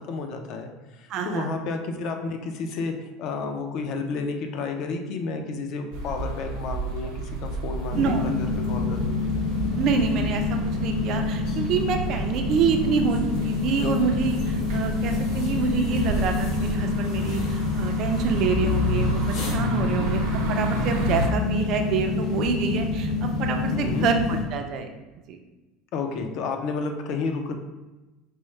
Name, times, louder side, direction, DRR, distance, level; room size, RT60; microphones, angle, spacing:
voice 1, 0.0-9.2 19.8-20.1 23.7-24.1 25.9-27.5, left 4 dB, 40° left, 4 dB, 0.4 m, -31 dB
voice 2, 1.1-1.5 7.9-8.2 9.8-24.9 25.3-25.4, right 6 dB, 35° right, 5 dB, 0.4 m, -27 dB
sound 1, 5.9-21.3, right 1 dB, 80° right, 0.8 m, -31 dB
sound 2, 7.9-24.4, left 4 dB, 90° left, 1.4 m, -27 dB
4.5 x 2.1 x 3.1 m, 1.1 s
cardioid pair, 175°, 0 cm